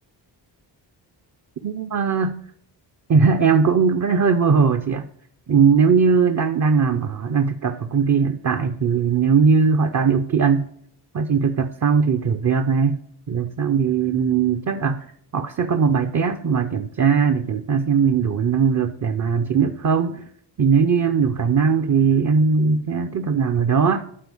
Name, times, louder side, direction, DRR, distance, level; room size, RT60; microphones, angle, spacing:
voice 1, 1.6-2.4 3.1-5.1 5.5-10.7 11.1-13.0 13.3-15.0 15.3-20.2 20.6-24.0, right 5 dB, 40° right, 8 dB, 0.7 m, -19 dB
12.0 x 4.4 x 7.1 m, 0.65 s
wide cardioid pair, 165°, 43 cm